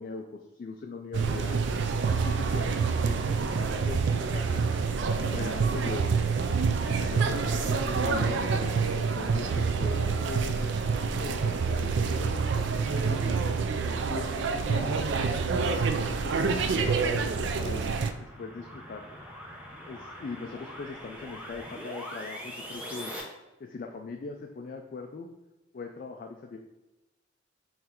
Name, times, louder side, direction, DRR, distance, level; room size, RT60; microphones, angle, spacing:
voice 1, 0.0-1.6 2.1-4.7 5.2-6.3 6.9-10.8 11.2-13.4 14.1-15.0 16.1-17.9 18.2-19.1 19.9-23.1 23.6-25.3 25.7-26.6, left 4 dB, 45° left, 3 dB, 0.3 m, -40 dB
sound 1, 1.1-18.1, right 5 dB, 60° right, 0.3 m, -27 dB
sound 2, 17.0-23.2, equal, 5° right, 0.7 m, -43 dB
3.7 x 3.2 x 4.4 m, 1.0 s
head